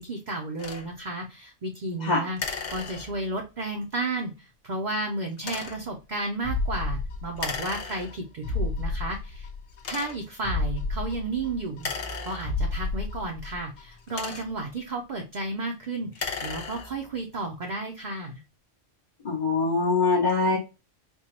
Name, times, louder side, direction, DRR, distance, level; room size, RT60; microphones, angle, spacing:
voice 1, 0.0-2.4 2.7-9.5 9.9-11.9 12.3-18.4, right 2 dB, 45° right, 1 dB, 0.7 m, -33 dB
sound 1, 0.6-0.9 2.4-3.4 5.4-5.9 7.4-8.4 9.1-9.2 9.8-10.4 11.7-12.9 13.8-14.7 16.0-17.1, left 5 dB, 70° left, 1.0 m, -36 dB
sound 2, 6.4-7.8 8.1-8.2 8.4-9.8 10.1-10.2 10.4-12.1 12.4-13.8 14.1-14.2, left 3 dB, 85° left, 1.2 m, -31 dB
voice 2, 19.2-20.6, left 3 dB, 40° left, -3 dB, 0.9 m, -23 dB
4.3 x 2.4 x 2.8 m, 0.29 s
omnidirectional pair, 1.3 m